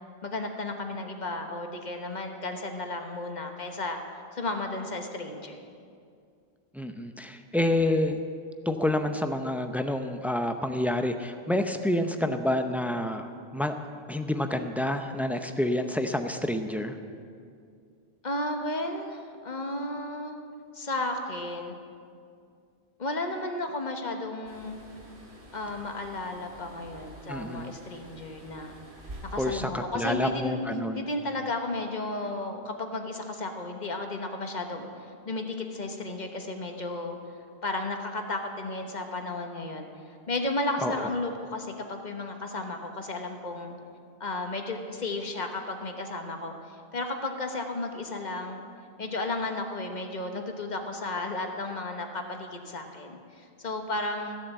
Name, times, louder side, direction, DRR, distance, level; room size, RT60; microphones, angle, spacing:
voice 1, 0.2-4.0 4.3-5.6 18.2-20.4 20.7-21.8 23.0-24.8 25.5-28.8 29.2-30.6 30.9-37.2 37.6-39.9 40.3-43.7 44.2-48.6 49.0-54.4, left 2 dB, 45° left, 4 dB, 1.2 m, -33 dB
voice 2, 6.7-8.2 8.7-13.7 14.1-16.9 27.3-27.7 29.4-31.0 40.8-41.1, left 1 dB, ahead, 7 dB, 0.4 m, -28 dB
sound 1, 24.5-29.5, right 1 dB, 55° right, 1.8 m, -47 dB
15.0 x 7.3 x 8.0 m, 2.3 s
omnidirectional pair, 1.0 m